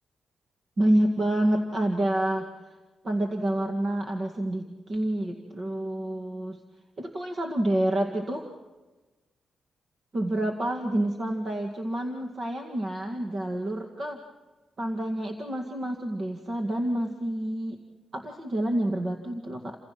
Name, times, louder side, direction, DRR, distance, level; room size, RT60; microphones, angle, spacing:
voice 1, 0.8-2.5 3.0-6.6 7.0-8.5 10.1-14.2 14.8-17.8 18.1-19.8, right 1 dB, 35° right, 2 dB, 2.0 m, -28 dB
30.0 x 27.5 x 6.1 m, 1.3 s
wide cardioid pair, 180°, 0 cm